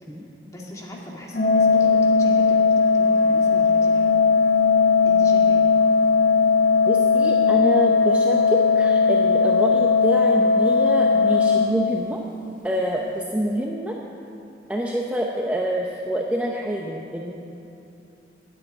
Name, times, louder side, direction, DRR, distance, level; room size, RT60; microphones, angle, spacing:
voice 1, 0.4-4.2 5.0-5.7, equal, 20° left, -3 dB, 2.2 m, -39 dB
Organ, 1.3-12.4, left 5 dB, 45° left, 0.6 m, -18 dB
voice 2, 6.9-12.2 12.6-14.0 14.7-17.3, equal, 10° right, -1 dB, 0.7 m, -26 dB
10.5 x 9.5 x 9.1 m, 2.8 s
head